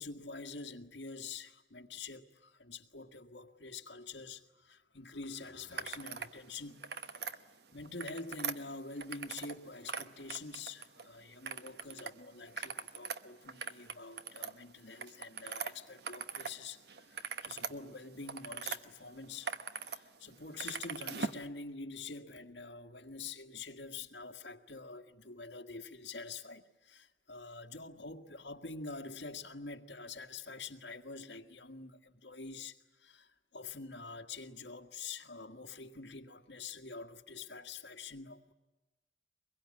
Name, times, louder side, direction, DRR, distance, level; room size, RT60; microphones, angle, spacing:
voice 1, 0.0-6.8 7.1-7.3 7.7-19.5 19.8-38.5, left 4 dB, 70° left, 1.8 m, -46 dB
sound 1, 5.7-6.3 6.7-7.4 7.8-9.6 9.8-11.0 11.4-12.1 12.4-16.6 16.9-18.8 19.2-20.0 20.3-21.4, right 6 dB, 60° right, 1.1 m, -41 dB
24.0 x 22.0 x 9.8 m
head